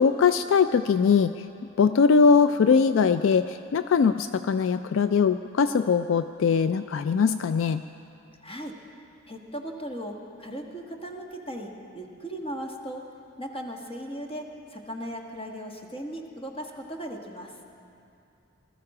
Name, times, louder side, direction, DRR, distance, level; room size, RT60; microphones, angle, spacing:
voice 1, 0.0-1.4 1.8-7.8, left 5 dB, 70° left, 11 dB, 0.3 m, -21 dB
voice 2, 8.4-8.8 9.2-13.0 13.4-17.6, equal, 30° left, 1 dB, 1.5 m, -37 dB
20.0 x 13.5 x 4.9 m, 2.6 s
head